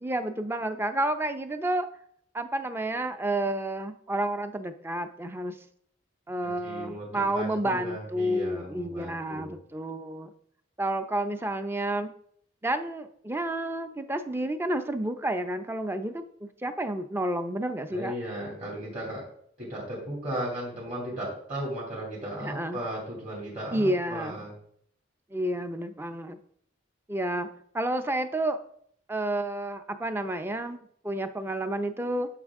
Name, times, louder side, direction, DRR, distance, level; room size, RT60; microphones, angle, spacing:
voice 1, 0.0-1.9 2.3-5.6 6.3-10.3 10.8-12.1 12.6-18.1 22.4-22.8 23.7-24.4 25.3-26.4 27.1-27.5 27.7-28.6 29.1-32.3, right 1 dB, 10° right, 9 dB, 0.5 m, -30 dB
voice 2, 6.4-9.6 17.9-19.2 19.6-24.5, right 1 dB, 40° right, -6 dB, 2.7 m, -36 dB
9.9 x 5.9 x 3.6 m, 0.66 s
head